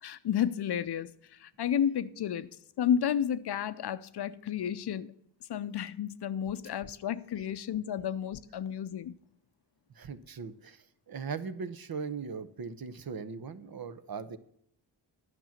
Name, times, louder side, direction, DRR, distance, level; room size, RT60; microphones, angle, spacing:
voice 1, 0.0-2.5 2.8-5.1 5.5-9.1, left 9 dB, 60° left, 0.6 m, -32 dB
voice 2, 9.9-14.4, right 5 dB, 50° right, 0.9 m, -39 dB
10.0 x 6.1 x 7.2 m
cardioid pair, 50°, 46 cm